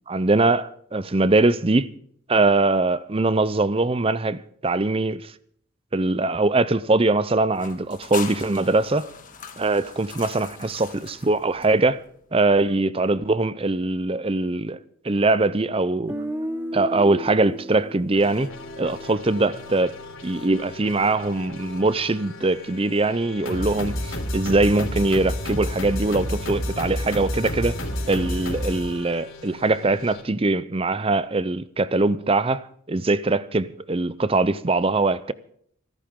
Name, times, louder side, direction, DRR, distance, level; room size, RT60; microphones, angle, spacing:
voice 1, 0.1-1.9 2.3-5.3 5.9-9.1 9.6-12.0 12.3-14.8 15.0-16.1 16.7-18.5 18.8-20.0 20.2-35.3, right 2 dB, 25° right, 0.6 m, -22 dB
sound 1, 7.5-12.1, left 6 dB, 40° left, 1.7 m, -40 dB
Guitar, 16.1-20.0, right 1 dB, 10° right, 1.0 m, -34 dB
sound 2, 18.1-30.2, left 1 dB, 65° left, 3.6 m, -32 dB
24.5 x 13.5 x 3.7 m
head